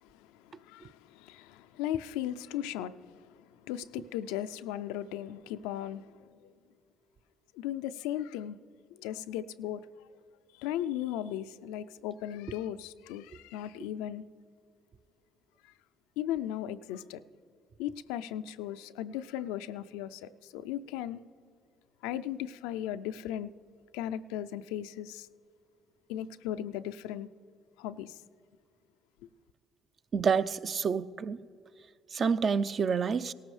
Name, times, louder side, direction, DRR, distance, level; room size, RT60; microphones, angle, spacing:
voice 1, 0.0-3.3 3.7-6.2 7.5-8.6 9.0-9.8 10.6-14.2 16.2-17.2 17.8-21.2 22.0-23.5 23.9-25.3 26.1-27.3 27.8-28.1, left 11 dB, 85° left, 0.3 m, -37 dB
voice 2, 30.1-31.4 32.1-33.3, right 6 dB, 50° right, 0.4 m, -28 dB
17.5 x 14.0 x 3.2 m
supercardioid pair, 65°, 0 cm